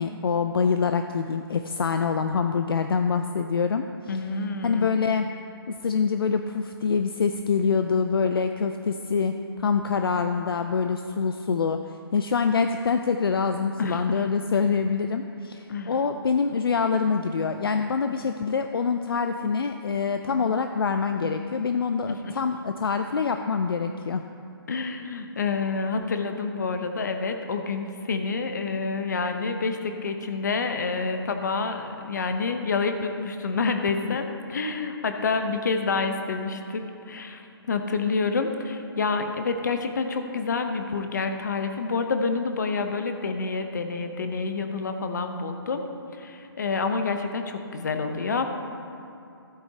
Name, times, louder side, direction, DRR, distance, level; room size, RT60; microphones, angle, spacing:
voice 1, 0.0-4.2 4.6-5.3 5.7-24.2 34.0-34.2, left 5 dB, 65° left, 7 dB, 0.5 m, -25 dB
voice 2, 4.1-4.9 13.8-14.2 15.7-16.0 22.1-22.4 24.7-37.4 37.7-45.8 46.2-48.5, left 4 dB, 45° left, 6 dB, 0.8 m, -28 dB
15.0 x 8.3 x 2.8 m, 2.7 s
hypercardioid pair, 170°, 13 cm